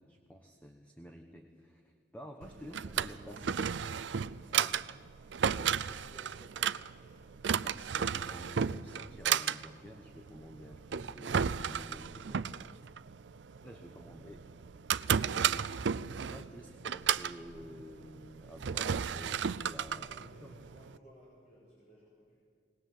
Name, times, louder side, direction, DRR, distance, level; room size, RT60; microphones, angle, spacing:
voice 1, 0.0-3.6 4.5-4.8 7.6-12.4 13.6-14.4 15.4-15.7 16.3-20.1 20.4-20.6, equal, 10° left, 4 dB, 1.0 m, -50 dB
Drawer open or close, 2.4-21.0, right 7 dB, 80° right, 0.5 m, -34 dB
voice 2, 2.6-4.8 5.2-7.7 11.9-12.8 13.9-15.0 20.0-22.4, equal, 35° left, -6 dB, 4.7 m, -60 dB
20.0 x 19.0 x 7.7 m, 2.2 s
head